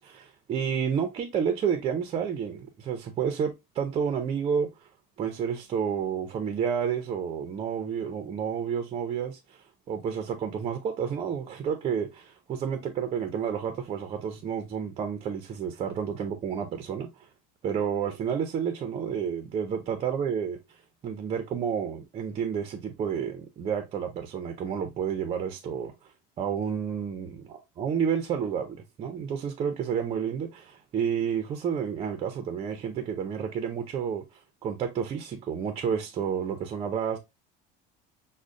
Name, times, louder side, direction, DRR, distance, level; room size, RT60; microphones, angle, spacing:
voice 1, 0.0-4.9 5.2-17.3 17.6-37.2, right 7 dB, 30° right, 0.5 m, -30 dB
6.2 x 2.1 x 2.4 m
cardioid pair, 150°, 19 cm